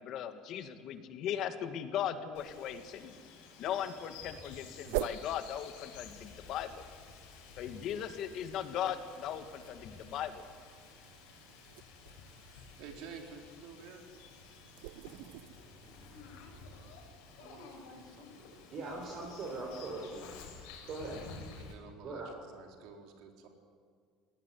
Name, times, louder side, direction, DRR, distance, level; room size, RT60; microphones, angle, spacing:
voice 1, 0.0-3.2 3.6-6.9 7.6-10.5, left 9 dB, 45° left, 9 dB, 1.9 m, -38 dB
Bird vocalization bird call bird song, 2.3-21.7, left 5 dB, 85° left, 6.6 m, -52 dB
sound 1, 4.8-5.3 9.3-12.8 13.8-17.1, right 16 dB, 80° right, 0.7 m, -44 dB
voice 2, 12.3-14.1 17.2-18.9 21.6-23.5, right 5 dB, 60° right, 3 dB, 4.1 m, -52 dB
voice 3, 18.7-20.3 20.9-21.2 22.0-22.3, right 3 dB, 40° right, -2 dB, 5.0 m, -40 dB
21.5 x 18.5 x 9.5 m, 2.1 s
cardioid pair, 160°, 0 cm